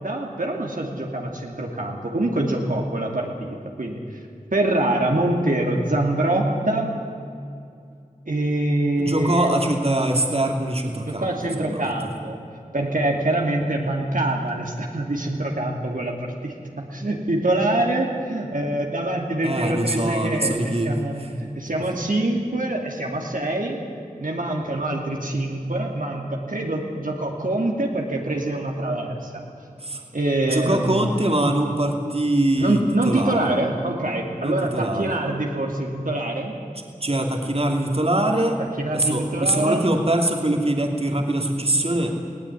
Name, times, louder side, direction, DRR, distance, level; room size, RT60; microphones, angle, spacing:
voice 1, 0.0-4.2 4.5-6.9 8.3-9.5 11.1-12.4 12.7-23.8 24.2-29.5 30.1-31.0 32.6-36.6 38.8-39.8, right 1 dB, 75° right, 0 dB, 2.6 m, -25 dB
voice 2, 9.0-11.3 11.6-12.1 19.4-20.9 21.3-21.5 29.8-30.0 30.5-32.8 33.0-33.4 34.4-35.2 37.0-38.6 38.9-42.1, right 1 dB, 45° right, 2 dB, 2.7 m, -23 dB
20.0 x 17.0 x 9.8 m, 2.4 s
wide cardioid pair, 45°, 14 cm